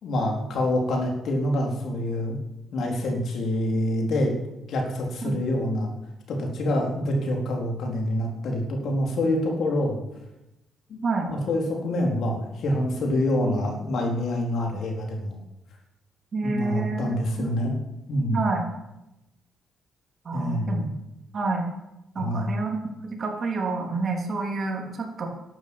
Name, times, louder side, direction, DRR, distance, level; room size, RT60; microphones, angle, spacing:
voice 1, 0.0-2.4 2.7-4.3 4.7-5.9 6.3-10.0 10.9-11.0 11.3-15.4 16.4-17.8 18.1-18.5 20.3-20.8 22.2-22.5, left 1 dB, 70° left, 1 dB, 4.1 m, -26 dB
voice 2, 16.3-17.5 18.3-18.6 20.2-20.9 21.3-21.7 22.1-25.3, right 3 dB, 45° right, 2 dB, 3.4 m, -28 dB
12.0 x 9.6 x 8.7 m, 0.92 s
cardioid pair, 90°, 0 cm